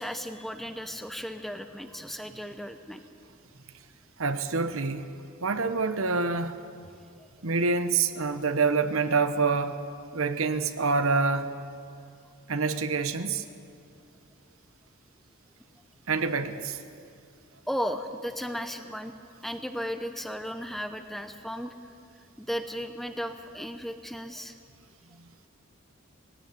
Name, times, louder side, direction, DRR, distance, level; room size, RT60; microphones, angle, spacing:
voice 1, 0.0-3.0 7.2-7.3 17.7-19.2 19.4-21.7 22.4-24.6, equal, ahead, 8 dB, 0.7 m, -35 dB
voice 2, 4.2-5.1 5.4-6.6 7.4-9.8 10.1-11.5 12.5-13.4 16.1-16.8, right 4 dB, 65° right, 10 dB, 1.0 m, -26 dB
19.0 x 16.5 x 9.5 m, 2.4 s
head